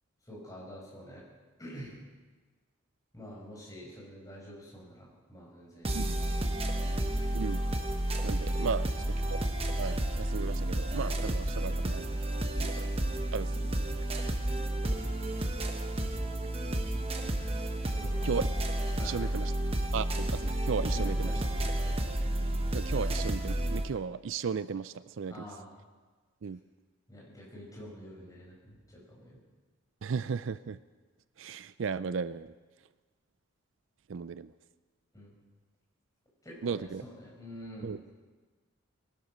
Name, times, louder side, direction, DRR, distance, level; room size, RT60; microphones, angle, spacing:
voice 1, 0.3-1.3 1.6-2.0 3.1-6.1 6.5-6.6 13.5-13.6 14.5-15.0 17.8-18.4 19.0-19.5 20.9-22.0 25.3-25.7 27.1-29.4 35.1-35.3 36.4-38.0, equal, 15° left, -3 dB, 5.1 m, -47 dB
sound 1, 5.8-23.9, right 1 dB, 25° right, 1.0 m, -31 dB
voice 2, 8.2-8.9 9.3-9.4 9.8-12.2 12.6-12.9 13.3-13.5 18.2-18.5 19.0-19.5 19.9-21.3 22.7-25.4 26.4-26.6 30.0-30.8 31.4-32.5 34.1-34.5 36.6-37.0 37.8-38.0, right 5 dB, 65° right, 15 dB, 0.4 m, -35 dB
20.0 x 11.5 x 6.2 m, 1.4 s
head